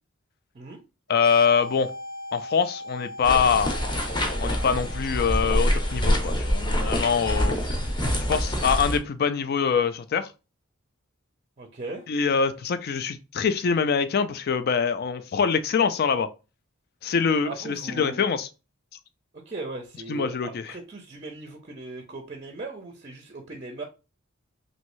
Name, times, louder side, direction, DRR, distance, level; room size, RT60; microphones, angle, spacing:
sound 1, 1.1-8.6, left 1 dB, 70° left, 1.0 m, -41 dB
voice 1, 1.1-1.9 2.3-3.8 4.4-7.6 8.3-10.3 12.1-16.3 17.0-18.5 20.1-20.7, left 6 dB, 50° left, 0.4 m, -24 dB
sound 2, 3.2-9.0, equal, 20° left, 0.7 m, -25 dB
voice 2, 11.6-12.1 17.4-18.3 19.5-23.8, right 3 dB, 35° right, 0.5 m, -38 dB
3.1 x 2.6 x 3.0 m
head